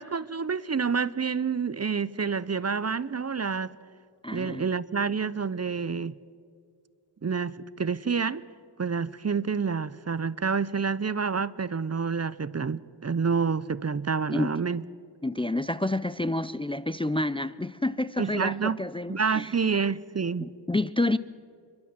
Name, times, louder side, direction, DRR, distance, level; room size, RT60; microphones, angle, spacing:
voice 1, 0.0-3.8 4.3-6.1 7.2-8.4 8.8-14.8 18.2-18.8 19.1-20.5, right 5 dB, 35° right, 0.5 m, -28 dB
voice 2, 4.2-4.7 14.3-14.5 15.2-19.5 20.4-21.2, left 2 dB, 15° left, 0.4 m, -29 dB
30.0 x 12.0 x 7.4 m
wide cardioid pair, 55°, 44 cm